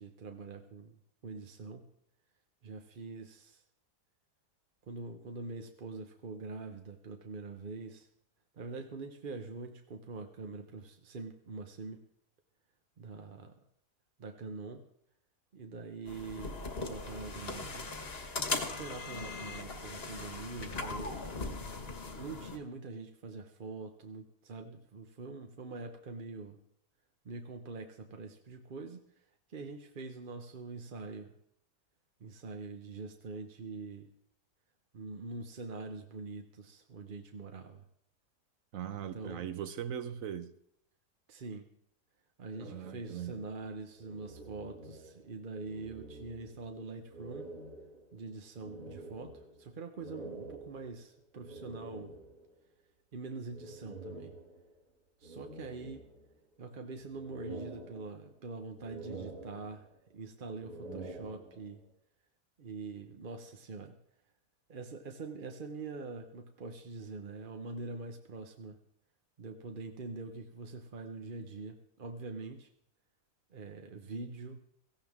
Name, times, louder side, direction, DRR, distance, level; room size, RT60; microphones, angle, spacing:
voice 1, 0.0-1.8 2.6-3.6 4.9-8.1 8.5-12.0 13.0-13.6 14.2-14.8 15.5-17.9 18.8-21.2 22.1-26.6 27.2-29.0 29.5-31.3 32.2-34.1 34.9-37.8 39.1-39.5 41.3-41.7 42.4-47.5 48.1-49.3 49.6-52.2 53.1-54.3 55.2-56.0 56.6-61.8 62.6-64.0 64.7-68.8 69.4-72.7 73.5-74.6, right 3 dB, 40° right, 5 dB, 0.8 m, -44 dB
sound 1, 16.1-22.6, left 3 dB, 40° left, 1.5 m, -39 dB
voice 2, 38.7-40.5 42.6-43.4, right 9 dB, 60° right, 12 dB, 1.1 m, -40 dB
sound 2, 42.5-45.3 45.6-46.7 47.1-52.5 53.5-54.8 55.2-56.5 56.9-58.4 58.7-60.1 60.5-61.8, right 2 dB, 80° right, 3.7 m, -48 dB
17.5 x 15.0 x 3.6 m, 0.72 s
omnidirectional pair, 1.7 m